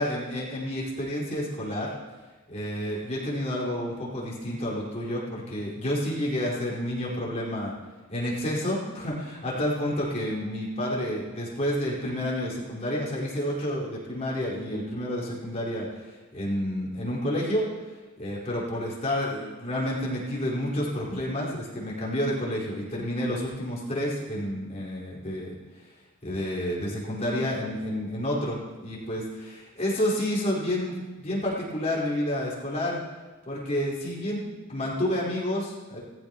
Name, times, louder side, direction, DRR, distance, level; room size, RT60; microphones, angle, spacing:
voice 1, 0.0-1.9 2.5-7.7 8.1-17.7 18.2-25.5 26.2-33.0 33.4-34.4 34.7-36.0, left 1 dB, 30° left, -6 dB, 4.9 m, -30 dB
20.0 x 15.0 x 3.1 m, 1.3 s
head